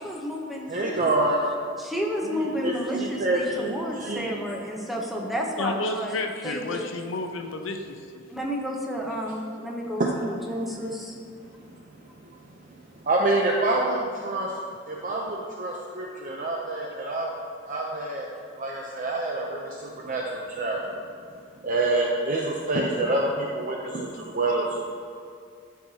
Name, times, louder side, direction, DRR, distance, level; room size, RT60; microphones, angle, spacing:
voice 1, 0.0-1.1 1.8-6.2 6.4-6.9 8.3-11.2, equal, ahead, -2 dB, 0.9 m, -31 dB
voice 2, 0.7-1.4 2.2-4.3 10.0-10.1 13.1-14.5 14.9-17.3 17.7-18.3 18.6-19.7 20.0-21.0 21.6-24.7, right 2 dB, 45° right, -1 dB, 0.6 m, -27 dB
voice 3, 5.6-8.2, left 2 dB, 85° left, 5 dB, 0.7 m, -31 dB
12.5 x 4.8 x 2.8 m, 2.3 s
head